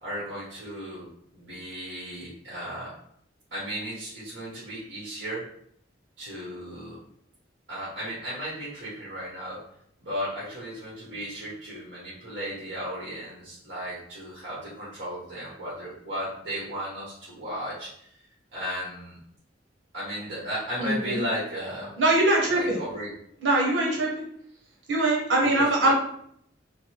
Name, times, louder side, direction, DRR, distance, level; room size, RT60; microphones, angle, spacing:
voice 1, 0.0-1.1 1.3-2.9 3.5-5.5 6.2-7.0 7.7-9.6 10.0-18.1 18.5-19.2 19.9-21.9 22.5-23.1 25.4-25.9, equal, 55° right, -8 dB, 1.6 m, -35 dB
voice 2, 20.8-21.2 22.0-22.8 23.4-24.1 24.9-25.9, right 2 dB, 90° right, -2 dB, 1.1 m, -22 dB
4.0 x 2.2 x 4.6 m, 0.68 s
head